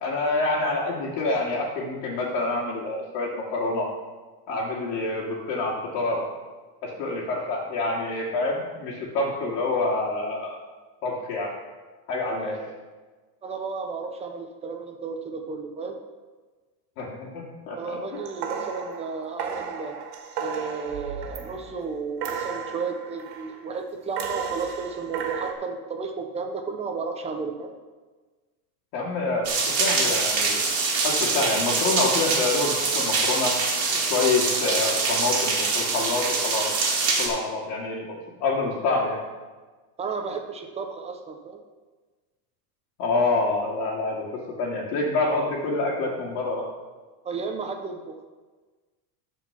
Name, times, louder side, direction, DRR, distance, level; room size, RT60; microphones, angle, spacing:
voice 1, 0.0-3.9 4.5-6.3 6.8-10.6 11.0-11.5 12.1-12.6 17.0-18.0 18.5-18.6 28.9-30.6 31.0-33.5 34.1-36.7 37.2-39.2 43.0-46.7, left 3 dB, 70° left, -5 dB, 2.3 m, -27 dB
voice 2, 12.4-12.7 13.4-16.0 17.7-20.0 20.4-27.7 40.0-41.6 47.2-48.2, right 4 dB, 15° right, 4 dB, 0.5 m, -33 dB
sound 1, 18.1-21.8 22.2-23.7 24.2-25.5, right 6 dB, 90° right, 1.7 m, -34 dB
sound 2, 29.4-37.3, right 4 dB, 30° right, 2.1 m, -24 dB
13.0 x 4.6 x 5.7 m, 1.3 s
supercardioid pair, 155°, 48 cm